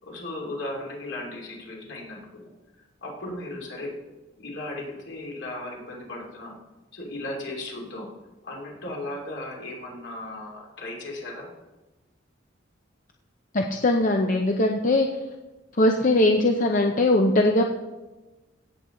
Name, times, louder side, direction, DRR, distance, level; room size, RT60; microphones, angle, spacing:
voice 1, 0.0-2.5 3.0-3.9 4.4-6.5 6.9-8.1 8.4-11.5, left 1 dB, 65° left, -2 dB, 3.0 m, -36 dB
voice 2, 13.5-15.1 15.8-17.6, left 1 dB, 40° left, 3 dB, 0.7 m, -20 dB
16.0 x 7.7 x 3.9 m, 1.1 s
head